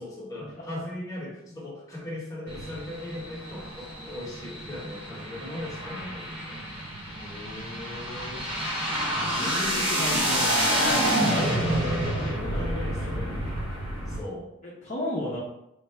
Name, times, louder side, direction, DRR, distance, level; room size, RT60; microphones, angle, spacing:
voice 1, 0.0-6.6 9.2-9.9 12.4-13.4 14.1-14.5, left 1 dB, 15° left, -6 dB, 1.1 m, -38 dB
sound 1, 2.5-14.2, equal, 25° right, 0.8 m, -28 dB
voice 2, 7.2-8.4 9.1-11.8 12.0-13.6 14.8-15.4, left 1 dB, 35° left, -8 dB, 0.7 m, -36 dB
3.2 x 2.5 x 4.4 m, 0.85 s
head